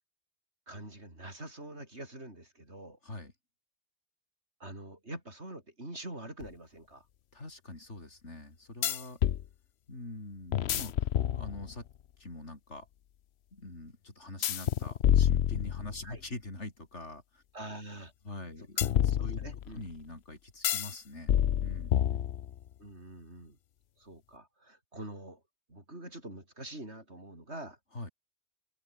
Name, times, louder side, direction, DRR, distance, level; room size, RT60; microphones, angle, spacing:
voice 1, 0.7-3.0 4.6-7.0 16.0-16.2 17.5-18.1 18.8-18.9 19.2-19.9 22.8-23.6 24.0-25.4 25.7-27.8, right 1 dB, 75° right, 7.1 m, -45 dB
sound 1, 6.4-6.5 8.8-9.4 10.5-11.8 14.4-16.1 18.8-19.8 20.6-21.0 21.3-22.6, left 10 dB, 70° left, 0.9 m, -28 dB
voice 2, 7.3-9.2 9.9-11.9 12.2-12.9 13.5-17.4 18.3-19.4 19.7-21.3 21.6-22.3 27.9-28.1, left 2 dB, 90° left, 5.3 m, -44 dB
omnidirectional pair, 1.2 m